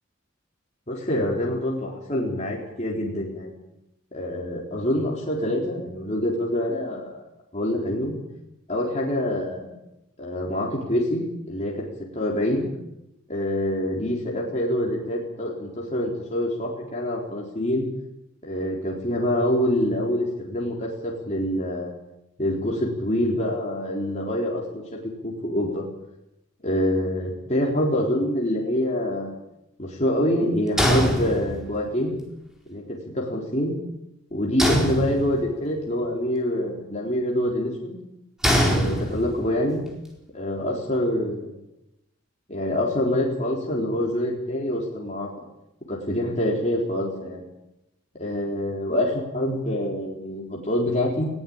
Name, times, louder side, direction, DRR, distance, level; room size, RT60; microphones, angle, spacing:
voice 1, 0.9-3.5 4.1-7.1 7.5-8.2 8.7-9.7 10.2-11.8 12.1-12.7 13.3-17.9 18.4-21.9 22.4-24.8 25.2-25.8 26.6-29.3 29.8-32.1 32.7-32.8 33.1-33.7 34.3-38.0 38.7-39.8 40.3-41.5 42.5-45.3 45.9-47.4 48.1-51.3, left 1 dB, 30° left, -3 dB, 4.0 m, -26 dB
sound 1, 30.8-31.9 34.6-35.6 38.4-39.5, equal, ahead, 4.3 m, -23 dB
21.0 x 17.0 x 8.9 m, 0.88 s
head